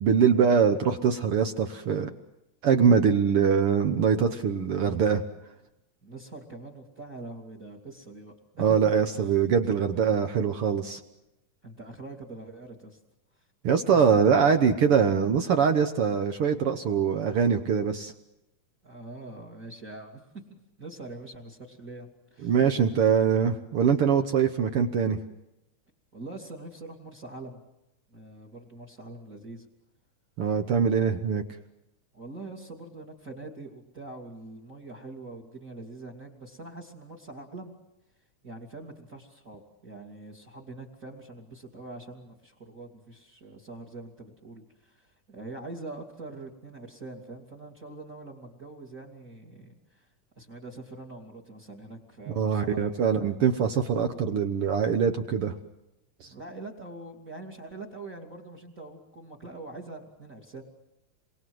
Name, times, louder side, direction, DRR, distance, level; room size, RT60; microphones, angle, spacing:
voice 1, 0.0-2.1 2.6-5.2 8.6-11.0 13.6-18.1 22.4-25.2 30.4-31.4 52.3-55.5 56.2-56.3, right 6 dB, 60° right, 7 dB, 1.6 m, -23 dB
voice 2, 6.0-8.9 11.6-13.0 13.9-14.3 18.8-20.2 20.5-22.5 26.1-27.6 28.1-29.6 32.1-37.7 38.4-50.1 50.4-53.1 56.2-60.6, right 2 dB, 25° right, 4 dB, 2.6 m, -43 dB
28.5 x 23.0 x 7.9 m, 0.91 s
omnidirectional pair, 3.7 m